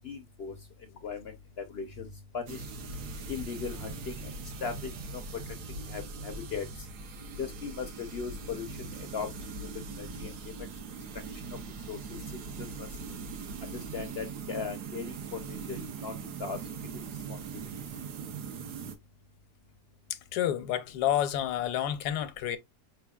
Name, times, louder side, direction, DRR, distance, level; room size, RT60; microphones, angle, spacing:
voice 1, 0.0-0.5 1.0-1.2 1.6-2.1 2.3-2.6 3.3-4.3 4.6-4.9 5.9-6.7 7.4-8.7 9.1-9.3 10.0-10.3 11.9-12.2 12.8-12.9 13.9-15.1 15.5-16.1 16.4-16.6 16.9-17.0, left 6 dB, 60° left, 0.6 m, -37 dB
sound 1, 2.5-18.9, right 4 dB, 75° right, 1.4 m, -41 dB
voice 2, 20.3-22.6, left 11 dB, 80° left, 1.2 m, -29 dB
4.6 x 3.5 x 2.3 m
omnidirectional pair, 1.7 m